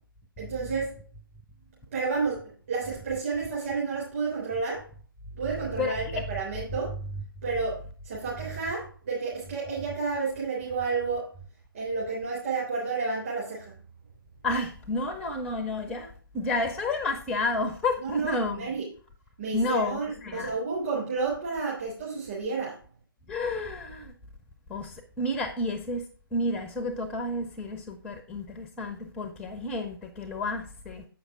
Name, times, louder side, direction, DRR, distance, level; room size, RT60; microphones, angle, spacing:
voice 1, 0.4-1.0 1.9-4.9 5.4-6.9 7.4-11.3 11.7-13.7 18.0-18.9 19.4-22.8, right 4 dB, 35° right, -5 dB, 3.7 m, -31 dB
voice 2, 5.8-6.2 14.4-18.7 19.5-20.5 23.3-24.1 24.7-26.1 26.3-31.1, left 2 dB, 5° left, 6 dB, 0.5 m, -31 dB
8.1 x 6.4 x 4.8 m, 0.41 s
figure-of-eight pair, 145°, 12 cm